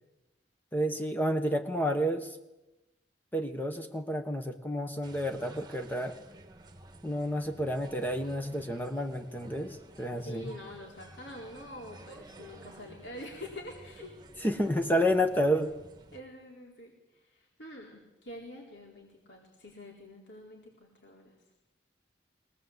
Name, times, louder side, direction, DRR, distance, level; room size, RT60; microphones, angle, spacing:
voice 1, 0.7-2.4 3.3-6.1 7.0-10.5 14.4-15.7, equal, 10° left, 5 dB, 1.2 m, -30 dB
sound 1, 5.0-16.2, right 2 dB, 25° right, 1.6 m, -52 dB
voice 2, 10.2-14.2 16.1-21.4, left 1 dB, 85° left, -1 dB, 4.1 m, -46 dB
22.5 x 19.0 x 8.1 m, 1.0 s
head